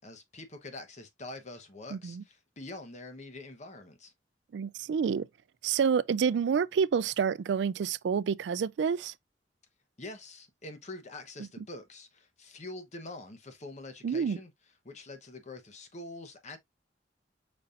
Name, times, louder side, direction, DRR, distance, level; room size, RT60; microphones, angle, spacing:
voice 1, 0.0-4.1 10.0-14.5 14.8-16.6, left 2 dB, 40° left, 1.0 m, -45 dB
voice 2, 1.9-2.2 4.5-5.3 5.6-9.1 14.0-14.4, right 6 dB, 70° right, 0.3 m, -28 dB
5.3 x 4.1 x 2.5 m
head